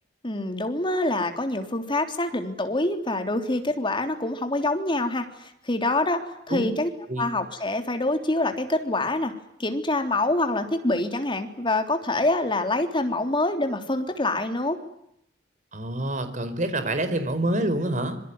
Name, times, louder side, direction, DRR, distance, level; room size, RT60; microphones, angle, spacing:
voice 1, 0.2-6.9 7.2-9.3 9.6-14.8, left 2 dB, 30° left, 6 dB, 3.4 m, -26 dB
voice 2, 15.7-18.2, right 1 dB, 45° right, 10 dB, 4.6 m, -27 dB
26.0 x 24.0 x 9.6 m, 0.76 s
head